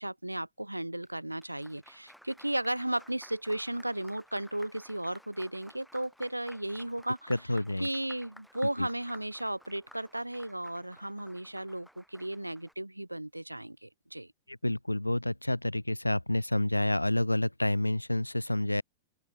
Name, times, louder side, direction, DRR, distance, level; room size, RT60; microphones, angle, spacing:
voice 1, 0.0-7.3 7.8-14.3, right 1 dB, 85° right, 1.4 m, -35 dB
Applause, 1.3-12.7, equal, ahead, 6.1 m, -56 dB
voice 2, 7.3-7.9 8.8-8.9 14.5-18.8, left 1 dB, 85° left, 0.8 m, -29 dB
open air
figure-of-eight pair, 90°, 0 cm